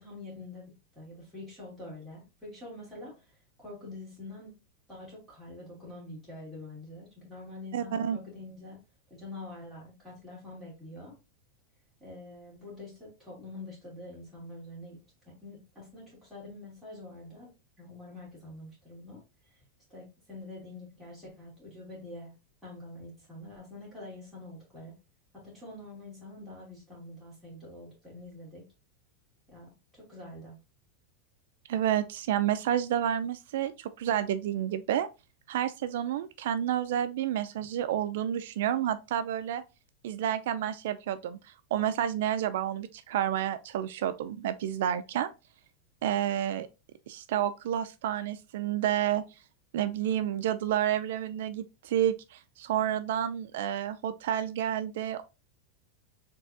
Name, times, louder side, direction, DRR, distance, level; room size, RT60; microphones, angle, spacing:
voice 1, 0.0-3.1 3.6-4.5 4.9-8.8 9.1-11.2 12.0-15.0 15.2-17.5 17.8-19.2 19.9-22.3 22.6-24.9 25.3-28.6 29.5-30.6, left 2 dB, ahead, 2.6 m, -46 dB
voice 2, 7.7-8.2 31.7-35.1 35.5-39.6 40.0-45.3 46.0-46.7 47.1-49.2 49.7-55.2, right 10 dB, 70° right, 0.3 m, -30 dB
4.5 x 3.4 x 2.6 m
supercardioid pair, 165°, 0 cm